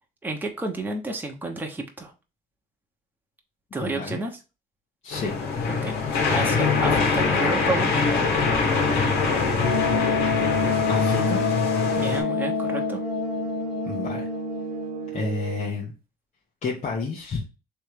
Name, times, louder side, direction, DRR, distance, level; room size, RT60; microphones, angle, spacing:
voice 1, 0.2-2.1 3.7-4.4 5.7-8.3 12.0-13.0, right 2 dB, 10° right, 2 dB, 1.0 m, -31 dB
voice 2, 3.8-4.2 5.0-5.7 10.9-11.5 13.8-14.3 15.1-15.9 16.6-17.4, left 4 dB, 40° left, -3 dB, 1.3 m, -30 dB
sound 1, 5.1-12.2, left 4 dB, 80° left, 1.8 m, -23 dB
sound 2, 8.7-15.8, right 13 dB, 60° right, 0.7 m, -36 dB
Wind instrument woodwind instrument, 9.6-15.2, left 6 dB, 65° left, 1.3 m, -27 dB
3.4 x 3.2 x 4.6 m, 0.30 s
cardioid pair, 110°, 17 cm